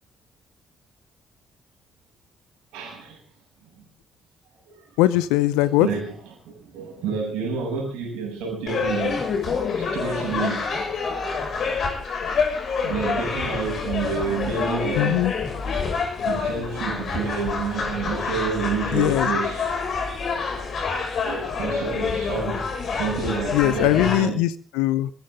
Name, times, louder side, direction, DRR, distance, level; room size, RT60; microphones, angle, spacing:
voice 1, 2.7-3.2 3.8-3.9 4.7-5.0 5.8-6.1 6.4-9.2 9.7-10.7 12.8-15.2 16.3-19.7 21.2-24.4, right 5 dB, 75° right, 7.4 m, -29 dB
voice 2, 5.0-5.9 15.0-15.3 18.9-19.3 23.5-25.1, left 15 dB, 75° left, 0.8 m, -20 dB
sound 1, 8.7-24.2, left 5 dB, 55° left, 6.3 m, -27 dB
25.5 x 14.0 x 3.8 m
hypercardioid pair, 40°, 0 cm